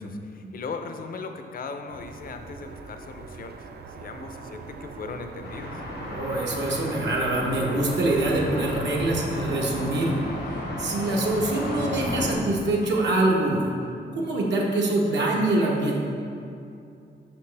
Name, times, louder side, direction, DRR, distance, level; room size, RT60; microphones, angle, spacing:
voice 1, 0.0-5.8, left 4 dB, 55° left, 6 dB, 0.5 m, -38 dB
sound 1, 1.9-10.5, right 4 dB, 65° right, 0.4 m, -42 dB
sound 2, 5.4-12.3, left 1 dB, 85° left, 1.1 m, -33 dB
voice 2, 6.0-10.1 10.8-13.7 14.1-16.0, right 2 dB, 85° right, -2 dB, 0.9 m, -24 dB
5.9 x 5.6 x 3.3 m, 2.5 s
wide cardioid pair, 115°, 18 cm